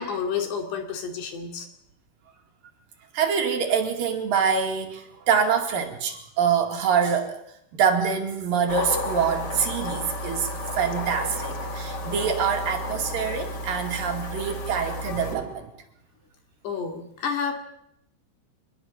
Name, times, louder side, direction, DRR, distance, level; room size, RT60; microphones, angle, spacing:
voice 1, 0.0-1.7 16.6-17.5, left 6 dB, 75° left, 4 dB, 4.8 m, -30 dB
voice 2, 3.1-7.4 7.7-15.7, right 6 dB, 60° right, 4 dB, 3.7 m, -25 dB
sound 1, 8.7-15.3, left 1 dB, 40° left, 1.6 m, -32 dB
24.0 x 20.5 x 7.1 m, 0.76 s
omnidirectional pair, 4.9 m